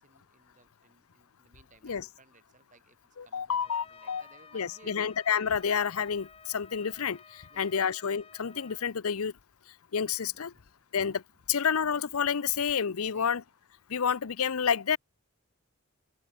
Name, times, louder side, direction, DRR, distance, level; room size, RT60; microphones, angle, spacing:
voice 1, 0.0-5.1 7.5-7.7 10.3-10.8 13.1-13.4, right 2 dB, 35° right, 4.3 m, -60 dB
voice 2, 3.2-4.2 4.5-9.3 9.9-10.5 10.9-11.2 11.5-13.4 13.9-15.0, left 7 dB, 80° left, 0.7 m, -29 dB
Trumpet, 3.6-8.9, left 5 dB, 25° left, 1.3 m, -54 dB
open air
head